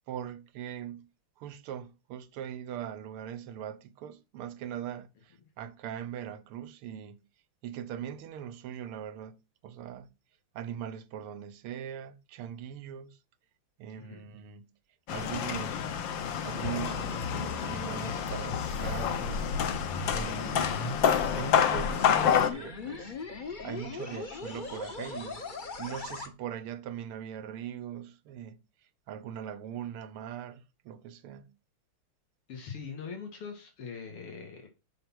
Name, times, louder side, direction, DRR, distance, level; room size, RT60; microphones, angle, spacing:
voice 1, 0.1-1.1 1.4-7.2 7.6-10.1 10.5-13.2 13.8-14.7 15.1-15.9 16.4-19.5 20.1-20.9 21.3-23.2 23.6-25.5 25.8-28.6 29.1-31.5, right 9 dB, 80° right, 1.8 m, -41 dB
sound 1, 15.1-22.5, left 8 dB, 65° left, 1.6 m, -28 dB
sound 2, 16.6-26.3, left 3 dB, 35° left, 0.8 m, -40 dB
voice 2, 32.5-34.7, left 6 dB, 90° left, 3.1 m, -42 dB
6.7 x 5.6 x 6.1 m
omnidirectional pair, 2.4 m